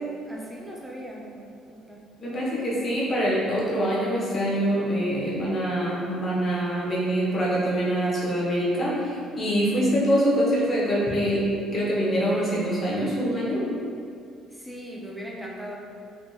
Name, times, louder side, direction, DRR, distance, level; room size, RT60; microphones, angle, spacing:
voice 1, 0.2-2.1 14.5-15.7, equal, 5° right, -3 dB, 0.5 m, -39 dB
voice 2, 2.2-11.5 11.7-13.7, equal, 35° left, -6 dB, 0.9 m, -24 dB
3.5 x 2.5 x 2.7 m, 2.4 s
cardioid pair, 120°, 0 cm